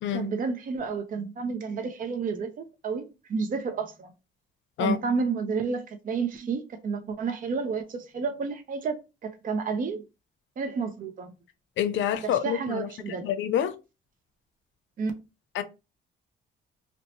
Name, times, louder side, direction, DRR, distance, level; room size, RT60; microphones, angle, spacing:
voice 1, 0.1-4.1 4.8-10.0 10.6-11.3 12.2-13.3 15.0-15.1, right 5 dB, 45° right, 0.6 m, -31 dB
voice 2, 11.8-12.9 13.2-13.7 15.5-15.6, left 9 dB, 70° left, 0.6 m, -27 dB
2.7 x 2.1 x 4.0 m
cardioid pair, 90°, 20 cm